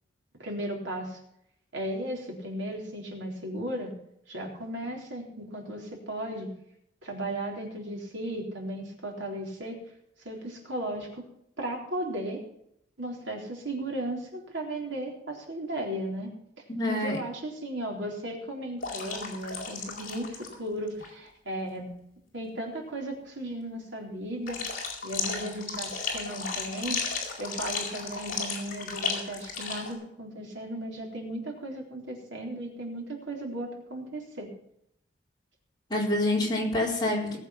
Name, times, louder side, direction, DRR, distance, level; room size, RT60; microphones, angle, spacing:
voice 1, 0.4-1.2 1.7-3.9 4.3-6.5 7.0-9.8 10.2-11.2 11.6-12.4 13.0-16.4 16.9-21.9 22.3-24.8 25.0-27.0 27.4-34.5, right 1 dB, 65° right, 0 dB, 3.9 m, -35 dB
voice 2, 16.7-17.2 35.9-37.4, left 1 dB, 20° left, -4 dB, 4.3 m, -27 dB
sound 1, 18.8-20.6 20.9-21.1 24.5-29.9, left 5 dB, 45° left, 4.2 m, -34 dB
19.0 x 8.1 x 5.8 m, 0.74 s
head